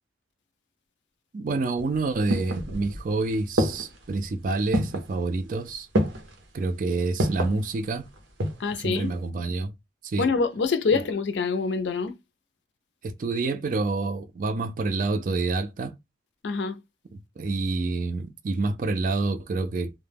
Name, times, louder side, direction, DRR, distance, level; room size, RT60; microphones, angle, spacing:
voice 1, 1.3-5.9 6.5-8.1 8.7-9.7 10.0-10.3 10.9-11.0 13.0-15.9 17.1-19.9, right 3 dB, 45° right, 0.4 m, -28 dB
sound 1, 1.8-3.1 3.6-4.1 4.7-5.1 5.9-6.4 7.2-7.6 8.1-8.7 9.0-9.1, equal, 85° right, 0.7 m, -27 dB
voice 2, 8.6-9.1 10.2-12.2 16.4-16.8, left 4 dB, 75° left, 0.4 m, -25 dB
2.1 x 2.1 x 3.3 m
head